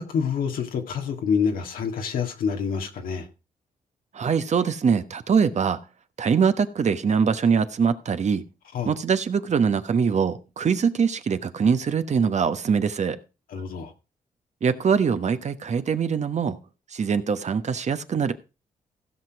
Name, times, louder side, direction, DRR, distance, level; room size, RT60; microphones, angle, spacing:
voice 1, 0.0-3.3 8.7-9.0 13.5-13.9, left 6 dB, 80° left, 1.9 m, -27 dB
voice 2, 4.1-5.8 6.2-8.4 8.9-13.2 14.6-16.6 16.9-18.3, right 6 dB, 55° right, 1.1 m, -23 dB
16.0 x 6.0 x 4.7 m
cardioid pair, 65°, 15 cm